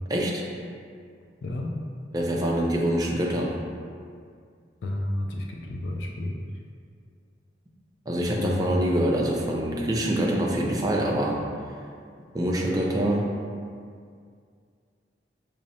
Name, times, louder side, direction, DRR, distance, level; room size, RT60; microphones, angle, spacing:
voice 1, 0.1-0.4 2.1-3.5 8.1-11.4 12.3-13.3, right 1 dB, 20° right, -2 dB, 0.4 m, -25 dB
voice 2, 1.4-1.7 4.8-6.3 8.4-8.7, left 1 dB, 80° left, 1 dB, 0.3 m, -31 dB
5.8 x 2.0 x 2.7 m, 2.2 s
head